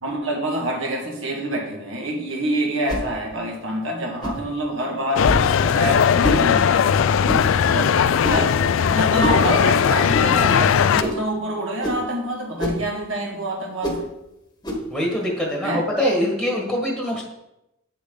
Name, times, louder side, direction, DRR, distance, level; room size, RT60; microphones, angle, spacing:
voice 1, 0.0-5.3 5.6-6.9 7.6-14.1 15.6-15.8, right 1 dB, 70° right, 0 dB, 1.8 m, -26 dB
sound 1, 2.9-3.1 4.2-4.4 5.2-5.5 6.2-6.5 7.2-7.5 8.2-8.5 9.2-9.4 10.1-10.3 11.0-11.3 11.8-12.0 12.6-12.8 13.8-14.0 14.6-14.9, left 1 dB, 20° left, 1.3 m, -25 dB
sound 2, 5.2-11.0, left 7 dB, 70° left, 0.3 m, -18 dB
voice 2, 14.9-17.2, equal, ahead, -1 dB, 1.5 m, -24 dB
8.5 x 6.7 x 3.9 m, 0.88 s
head